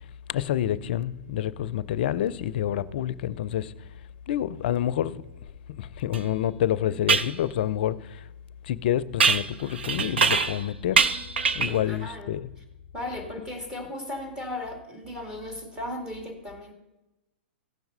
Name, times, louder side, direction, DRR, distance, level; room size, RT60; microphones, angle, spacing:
voice 1, 0.3-3.7 4.3-5.2 5.7-8.3 8.6-11.1 11.5-12.5, left 11 dB, 60° left, 0.5 m, -28 dB
sound 1, 6.1-6.2 7.1-7.3 9.2-10.6 10.9-11.8, right 5 dB, 80° right, 0.7 m, -23 dB
voice 2, 11.7-12.3 12.9-16.7, left 1 dB, 10° right, 2.2 m, -36 dB
15.0 x 5.8 x 5.5 m
hypercardioid pair, 120°, 6 cm